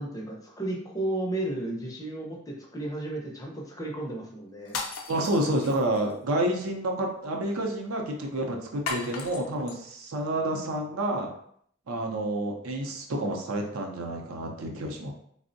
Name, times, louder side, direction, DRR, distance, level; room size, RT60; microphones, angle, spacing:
voice 1, 0.0-4.8, right 1 dB, 15° left, -1 dB, 0.5 m, -33 dB
sound 1, 4.6-6.1 8.9-9.8, left 4 dB, 75° left, 0.5 m, -36 dB
voice 2, 5.1-11.3 11.9-15.1, right 1 dB, 70° right, 2 dB, 0.5 m, -29 dB
3.4 x 2.0 x 2.6 m, 0.65 s
head